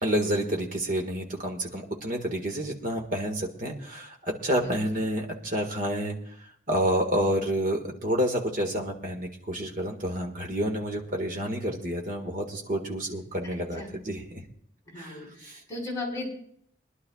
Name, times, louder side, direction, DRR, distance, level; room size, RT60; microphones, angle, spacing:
voice 1, 0.0-6.2 6.7-14.4 15.0-15.6, equal, 45° right, 3 dB, 1.8 m, -29 dB
voice 2, 14.9-15.3 15.7-16.3, left 2 dB, 20° left, -4 dB, 4.9 m, -34 dB
24.5 x 11.0 x 2.4 m, 0.64 s
head